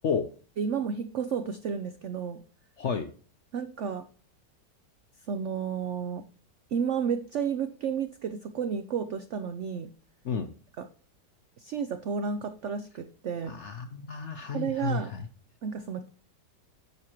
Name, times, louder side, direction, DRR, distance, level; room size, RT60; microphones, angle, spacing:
voice 1, 0.6-2.4 3.5-4.1 5.3-6.2 6.7-9.9 10.8-10.9 11.6-13.6 14.5-15.1 15.6-16.1, right 7 dB, 75° right, 10 dB, 0.6 m, -32 dB
voice 2, 2.8-3.1 10.2-10.5 13.5-15.3, left 5 dB, 60° left, 8 dB, 0.7 m, -31 dB
9.4 x 6.5 x 2.9 m, 0.41 s
omnidirectional pair, 1.9 m